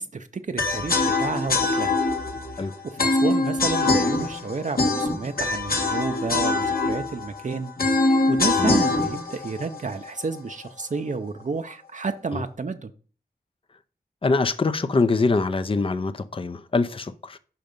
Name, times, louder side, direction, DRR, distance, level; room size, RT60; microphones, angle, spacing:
voice 1, 0.0-2.0 2.5-7.7 8.0-12.9, right 4 dB, 50° right, 0.5 m, -31 dB
sound 1, 0.6-10.6, left 3 dB, 65° left, 1.7 m, -24 dB
voice 2, 14.2-17.4, left 3 dB, 35° left, 0.5 m, -24 dB
5.7 x 5.2 x 5.2 m
cardioid pair, 45°, 16 cm